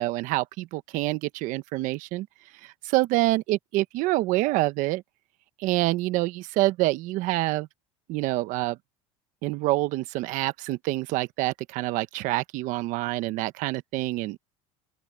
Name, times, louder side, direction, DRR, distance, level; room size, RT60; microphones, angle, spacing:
voice 1, 0.0-2.3 2.6-5.0 5.6-7.7 8.1-8.8 9.4-14.4, right 18 dB, 60° right, 1.1 m, -26 dB
open air
supercardioid pair, 120°, 15 cm